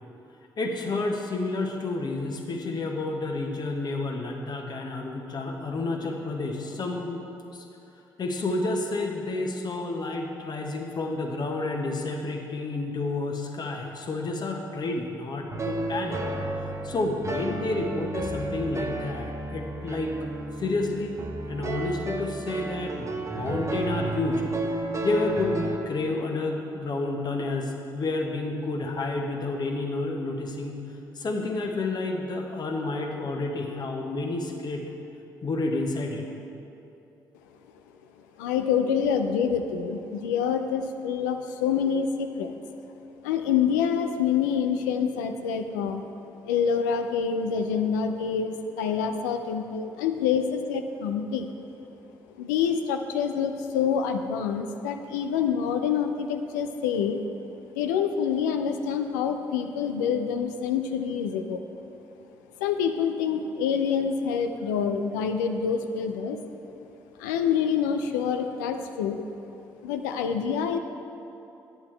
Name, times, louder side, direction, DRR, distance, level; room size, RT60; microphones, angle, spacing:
voice 1, 0.6-7.2 7.5-7.7 8.2-16.2 16.8-20.1 20.6-21.2 21.5-24.4 25.0-30.8 31.1-34.8 35.4-36.2, left 2 dB, 50° left, 2 dB, 1.1 m, -30 dB
sound 1, 15.5-25.8, right 2 dB, 30° right, 0.8 m, -32 dB
voice 2, 38.4-42.5 43.2-46.1 46.5-51.5 52.4-57.2 57.7-61.6 62.6-66.4 67.2-69.3 69.8-70.8, left 7 dB, 85° left, 6 dB, 0.4 m, -26 dB
9.5 x 8.4 x 3.3 m, 2.8 s
hypercardioid pair, 45°, 9 cm